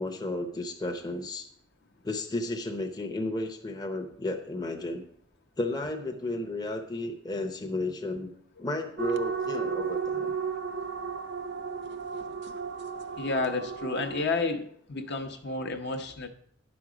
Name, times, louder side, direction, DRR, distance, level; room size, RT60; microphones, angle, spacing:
voice 1, 0.0-1.5 2.0-5.1 5.6-8.3 8.6-10.3, left 2 dB, 20° left, 3 dB, 0.7 m, -33 dB
sound 1, 9.0-14.3, right 6 dB, 55° right, 0.5 m, -34 dB
voice 2, 13.2-16.3, left 3 dB, 55° left, 5 dB, 0.8 m, -31 dB
10.0 x 6.1 x 5.0 m, 0.66 s
head